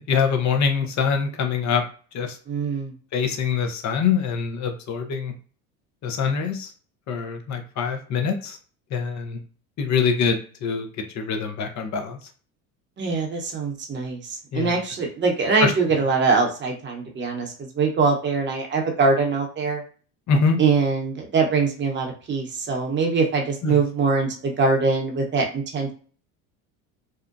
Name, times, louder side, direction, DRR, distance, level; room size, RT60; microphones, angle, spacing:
voice 1, 0.1-1.8 2.1-2.4 3.1-5.3 6.0-6.7 7.1-8.6 8.9-9.4 9.8-10.9 11.1-12.2 14.5-14.8 15.6-15.7 20.3-20.6 23.6-23.8, left 6 dB, 40° left, 5 dB, 0.7 m, -24 dB
voice 2, 2.5-2.9 13.0-19.8 20.6-25.9, right 4 dB, 25° right, 1 dB, 0.9 m, -23 dB
2.7 x 2.1 x 2.5 m, 0.40 s
hypercardioid pair, 85°, 43 cm